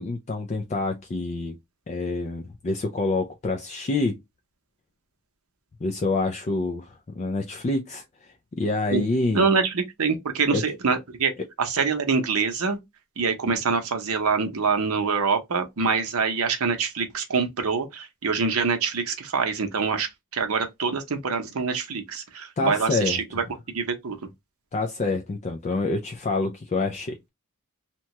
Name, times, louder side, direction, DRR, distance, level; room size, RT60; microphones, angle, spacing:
voice 1, 0.0-1.6 1.9-4.2 5.8-8.0 8.6-9.5 10.5-10.6 22.6-23.6 24.7-27.3, left 3 dB, 30° left, 0.4 m, -27 dB
voice 2, 9.3-11.3 11.6-12.8 13.2-20.1 20.3-23.2 23.7-24.2, right 5 dB, 80° right, 0.7 m, -25 dB
2.9 x 2.2 x 2.8 m
head